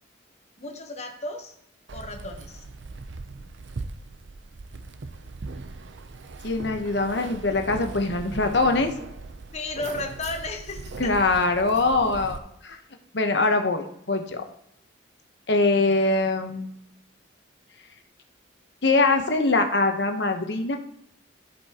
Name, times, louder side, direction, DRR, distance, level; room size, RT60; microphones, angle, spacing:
voice 1, 0.6-1.5 1.9-2.6 9.5-11.2, left 2 dB, 35° left, 4 dB, 1.1 m, -34 dB
Keys jangling, 1.9-12.4, right 3 dB, 70° right, 0.6 m, -39 dB
voice 2, 6.4-8.9 11.0-12.8 13.1-14.4 15.5-16.7 18.8-20.8, left 3 dB, 65° left, 5 dB, 1.0 m, -23 dB
14.5 x 5.3 x 2.9 m, 0.74 s
head